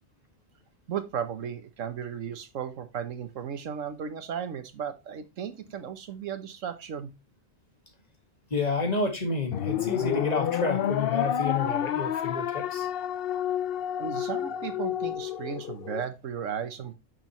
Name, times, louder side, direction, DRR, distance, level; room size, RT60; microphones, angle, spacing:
voice 1, 0.9-7.1 14.0-16.9, right 8 dB, 75° right, 1.4 m, -35 dB
voice 2, 8.5-12.9, left 3 dB, 30° left, 1.9 m, -30 dB
sound 1, 9.5-16.0, left 10 dB, 60° left, 0.7 m, -29 dB
sound 2, 10.0-12.9 13.9-15.1, left 2 dB, 35° right, 3.6 m, -45 dB
9.2 x 6.7 x 3.0 m
omnidirectional pair, 1.3 m